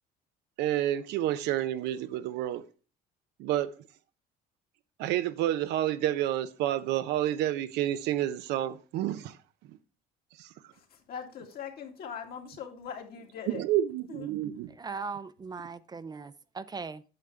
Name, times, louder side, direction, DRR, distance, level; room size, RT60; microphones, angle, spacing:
voice 1, 0.6-2.6 3.4-3.7 5.0-9.4 10.4-10.5 13.5-14.7, right 12 dB, 90° right, 0.7 m, -29 dB
voice 2, 10.7-13.6 14.1-14.7, left 7 dB, 65° left, 2.1 m, -42 dB
voice 3, 14.7-17.0, right 4 dB, 25° right, 0.4 m, -39 dB
8.7 x 6.6 x 3.3 m
cardioid pair, 110°, 17 cm